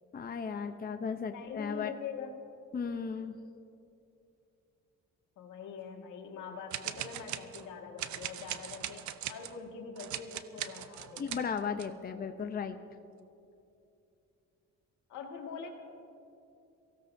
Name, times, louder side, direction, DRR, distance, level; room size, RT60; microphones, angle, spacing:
voice 1, 0.1-1.9 2.7-3.4 11.2-12.8, left 6 dB, 30° left, 7 dB, 0.7 m, -35 dB
voice 2, 1.3-2.4 5.4-11.5 15.1-15.7, left 6 dB, 80° left, 1 dB, 1.9 m, -44 dB
sound 1, 6.7-7.7 8.0-9.6 10.0-11.9, right 11 dB, 70° right, 0.7 m, -40 dB
23.5 x 16.0 x 2.7 m, 2.7 s
cardioid pair, 90°, 30 cm